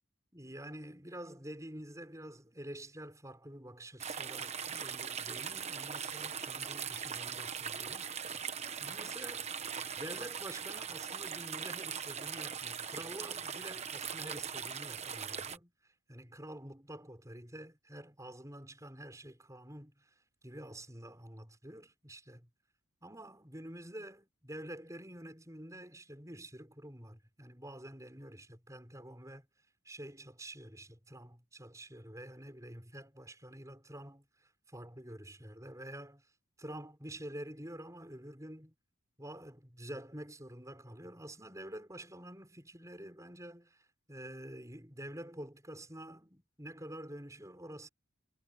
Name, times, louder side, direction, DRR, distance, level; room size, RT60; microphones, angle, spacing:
voice 1, 0.3-8.5 8.8-9.5 9.9-20.1 20.4-22.5 23.0-29.5 29.8-36.3 36.6-38.7 39.2-47.9, right 1 dB, 15° right, 6.8 m, -48 dB
sound 1, 4.0-15.6, right 7 dB, 30° right, 1.1 m, -40 dB
head